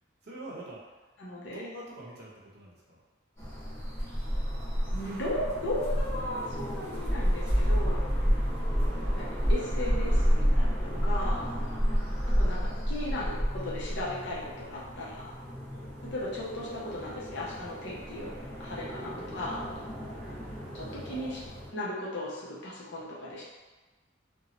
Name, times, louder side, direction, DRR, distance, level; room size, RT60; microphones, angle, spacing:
voice 1, 0.2-1.1 1.5-3.0 4.5-5.2 8.2-8.3 11.6-12.0 15.7-15.9 20.0-20.7, right 1 dB, 50° right, -4 dB, 0.6 m, -47 dB
voice 2, 1.2-1.6 4.9-8.1 9.1-11.5 12.3-15.3 16.1-19.7 20.7-21.4 21.7-23.4, left 1 dB, 65° left, -6 dB, 0.7 m, -36 dB
sound 1, 3.4-21.7, equal, 15° left, 1.2 m, -30 dB
2.7 x 2.2 x 2.9 m, 1.2 s
head